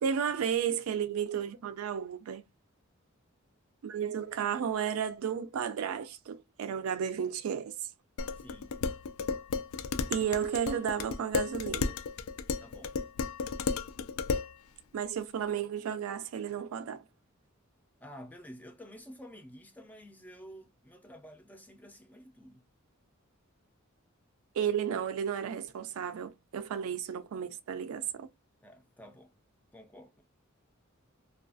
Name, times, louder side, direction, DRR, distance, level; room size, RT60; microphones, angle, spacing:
voice 1, 0.0-2.4 3.8-7.7 10.1-11.9 14.9-17.0 24.6-28.3, right 8 dB, 90° right, 0.3 m, -33 dB
Dishes pots and pans, 8.2-14.5, left 5 dB, 80° left, 0.3 m, -33 dB
voice 2, 8.3-8.8 12.6-13.0 18.0-22.6 28.6-29.3 29.7-30.2, equal, 10° left, 0.4 m, -50 dB
2.3 x 2.3 x 2.5 m
head